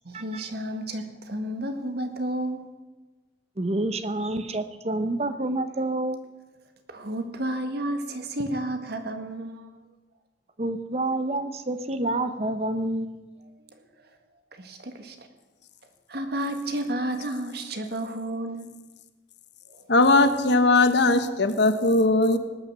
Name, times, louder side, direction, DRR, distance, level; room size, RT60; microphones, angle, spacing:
voice 1, 0.1-2.7 6.9-9.7 14.5-15.2 16.1-18.7 19.8-19.9, right 1 dB, 60° right, 6 dB, 1.8 m, -31 dB
voice 2, 3.6-6.2 10.6-13.2, right 2 dB, 35° right, 10 dB, 0.9 m, -28 dB
voice 3, 19.9-22.4, left 2 dB, 65° left, 10 dB, 1.2 m, -19 dB
18.5 x 9.5 x 6.9 m, 1.2 s
head